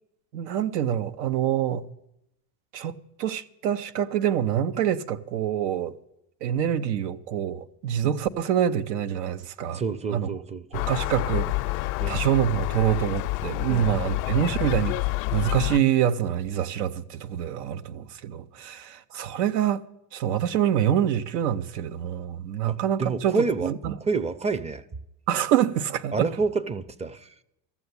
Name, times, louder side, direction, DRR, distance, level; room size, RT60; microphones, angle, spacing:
voice 1, 0.3-1.8 2.7-2.9 3.2-5.9 6.4-9.8 10.1-10.3 10.7-15.0 15.3-19.8 20.1-24.0 25.3-26.3, right 10 dB, 90° right, 0.7 m, -26 dB
voice 2, 9.7-10.9 12.0-12.2 13.7-14.1 22.7-23.7 24.0-24.8 26.1-27.3, right 4 dB, 15° right, 0.4 m, -28 dB
Gull seagull, 10.7-15.8, left 22 dB, 70° left, 0.5 m, -28 dB
14.0 x 7.2 x 8.0 m
supercardioid pair, 95°, 46 cm